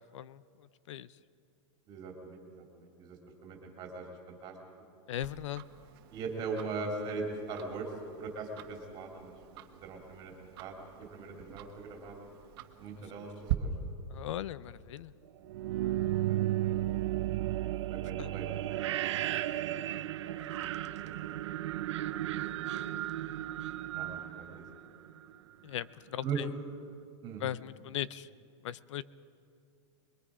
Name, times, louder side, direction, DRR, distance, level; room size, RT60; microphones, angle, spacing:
voice 1, 1.9-4.5 6.1-7.9 8.2-12.2 12.8-13.7 16.3-17.1 17.9-18.6 20.2-20.3 20.6-20.8 21.0-21.4 21.7-22.4 23.9-24.6 26.2-26.4 27.2-27.4, right 4 dB, 30° right, 1 dB, 2.7 m, -41 dB
voice 2, 5.1-5.6 13.2-13.3 14.1-15.1 18.2-18.3 25.6-26.5 27.4-28.3 28.6-29.0, left 11 dB, 75° left, 19 dB, 0.6 m, -38 dB
Tick-tock, 5.2-13.5, right 17 dB, 50° right, 1.3 m, -43 dB
sound 1, 15.4-25.3, right 13 dB, 70° right, 0.7 m, -34 dB
25.0 x 22.0 x 4.9 m, 2.5 s
supercardioid pair, 160°, 16 cm